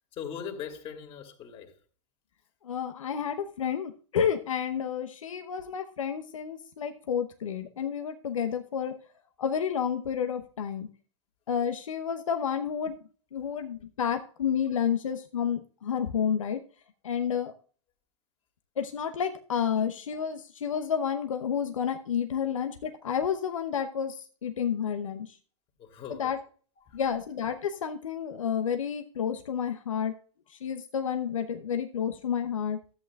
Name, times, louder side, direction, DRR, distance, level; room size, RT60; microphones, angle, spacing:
voice 1, 0.1-1.7 25.8-26.3 26.8-27.0, left 7 dB, 35° left, 2.5 m, -40 dB
voice 2, 2.6-8.9 9.4-10.9 11.5-13.0 13.3-16.6 17.0-17.5 18.8-25.4 26.2-26.4 26.9-30.1 30.5-32.8, left 8 dB, 85° left, 0.9 m, -30 dB
13.5 x 8.3 x 2.3 m
hypercardioid pair, 110°, 16 cm